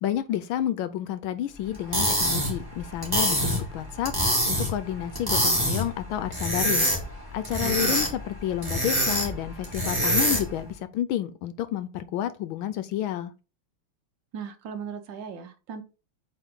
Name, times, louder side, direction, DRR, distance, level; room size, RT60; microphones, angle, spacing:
voice 1, 0.0-4.1 4.5-6.9 7.3-13.3, left 11 dB, 75° left, 1.3 m, -30 dB
sound 1, 1.7-10.6, equal, 10° right, 2.3 m, -26 dB
voice 2, 7.6-8.1 14.3-15.8, right 6 dB, 65° right, 1.4 m, -37 dB
8.2 x 3.8 x 3.6 m
omnidirectional pair, 2.4 m